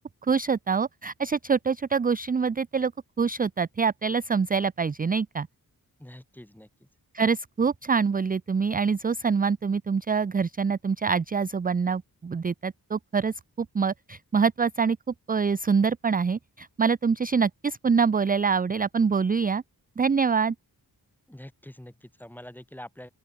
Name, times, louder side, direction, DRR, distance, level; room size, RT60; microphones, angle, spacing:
voice 1, 0.3-2.9 3.2-5.5 7.1-15.0 15.3-19.6 20.0-20.5, right 5 dB, 25° right, 0.4 m, -25 dB
voice 2, 6.0-6.9 21.3-23.1, left 1 dB, 5° left, 1.2 m, -45 dB
open air
wide cardioid pair, 120°, 37 cm